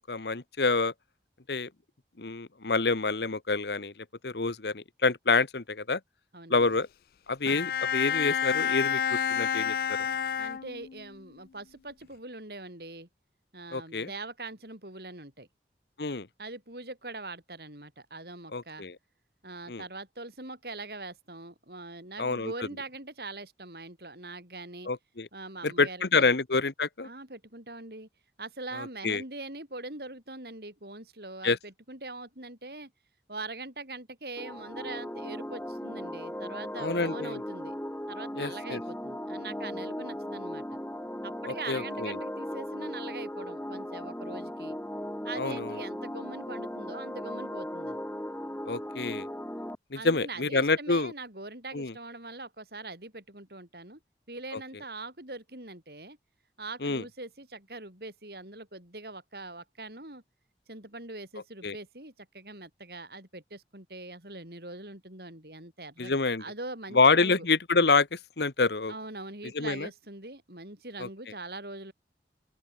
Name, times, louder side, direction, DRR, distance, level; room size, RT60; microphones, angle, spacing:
voice 1, 0.1-0.9 1.5-1.7 2.2-6.0 6.5-6.9 7.3-10.0 13.7-14.1 16.0-16.3 18.5-19.0 19.7-19.8 22.2-22.5 24.8-25.3 25.6-27.1 28.8-29.2 31.4-31.6 36.8-37.4 38.4-38.8 41.7-42.2 45.4-45.7 48.7-49.3 49.9-51.1 51.7-51.9 56.8-57.0 61.6-61.8 66.0-66.4 66.9-68.9 69.5-69.9 71.0-71.1, left 4 dB, 75° left, 1.1 m, -27 dB
voice 2, 6.3-6.7 10.4-13.1 13.5-15.5 16.4-18.8 19.4-24.9 25.3-26.3 27.0-28.1 28.4-32.9 33.3-37.7 38.1-40.8 41.2-44.8 45.2-48.0 49.9-54.0 54.3-56.2 56.6-60.2 60.7-67.4 68.9-71.9, right 2 dB, 60° right, 6.8 m, -42 dB
Bowed string instrument, 7.5-11.1, left 8 dB, 55° left, 0.3 m, -29 dB
sound 1, 34.4-49.8, equal, 10° left, 2.3 m, -37 dB
open air
head